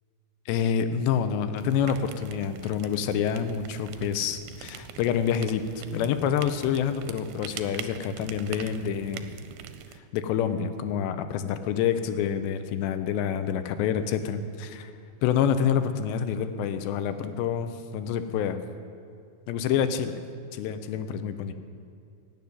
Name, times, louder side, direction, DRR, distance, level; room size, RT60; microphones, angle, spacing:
voice 1, 0.5-5.6 5.9-9.3 10.1-14.9 15.2-18.6 19.5-20.2 20.5-21.5, left 8 dB, 85° left, 10 dB, 3.0 m, -27 dB
sound 1, 1.6-10.0, right 10 dB, 90° right, 2.8 m, -43 dB
17.0 x 7.2 x 9.6 m, 2.5 s
omnidirectional pair, 4.9 m